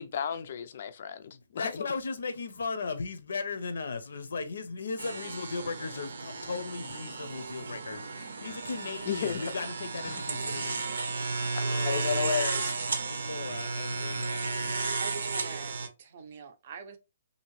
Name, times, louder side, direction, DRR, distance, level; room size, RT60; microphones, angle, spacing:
voice 1, 0.0-1.8 9.1-9.5 10.0-10.2 11.8-12.7, left 7 dB, 45° left, 0.4 m, -33 dB
voice 2, 1.3-11.0 11.3-12.3 13.1-14.8, left 4 dB, 80° left, 0.6 m, -37 dB
sound 1, 5.0-15.9, right 3 dB, 85° right, 0.7 m, -33 dB
voice 3, 15.0-17.0, right 6 dB, 35° right, 0.5 m, -44 dB
2.8 x 2.6 x 3.1 m
hypercardioid pair, 175°, 0 cm